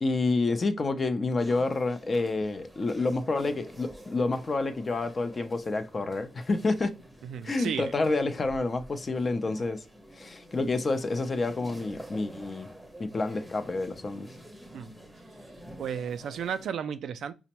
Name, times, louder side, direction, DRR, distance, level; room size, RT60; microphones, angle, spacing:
voice 1, 0.0-6.9 7.4-9.9 10.1-12.7 13.0-14.3, left 3 dB, 30° left, 0.5 m, -28 dB
sound 1, 1.4-16.7, right 1 dB, 5° right, 0.7 m, -49 dB
voice 2, 7.2-7.9 14.7-14.9 15.8-17.3, right 8 dB, 70° right, 0.3 m, -33 dB
5.0 x 2.1 x 2.9 m
cardioid pair, 90°, 0 cm